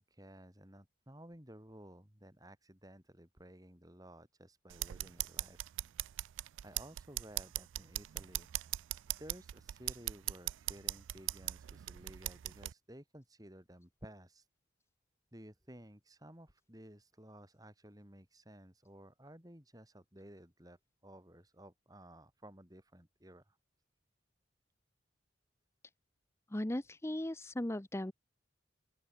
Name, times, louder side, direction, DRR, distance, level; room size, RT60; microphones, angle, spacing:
voice 1, 0.0-5.7 6.6-8.8 9.2-14.5 15.3-23.6, right 1 dB, 20° right, 3.6 m, -55 dB
sound 1, 4.7-12.7, right 16 dB, 90° right, 0.3 m, -40 dB
voice 2, 26.5-28.1, left 1 dB, 15° left, 0.7 m, -37 dB
open air
head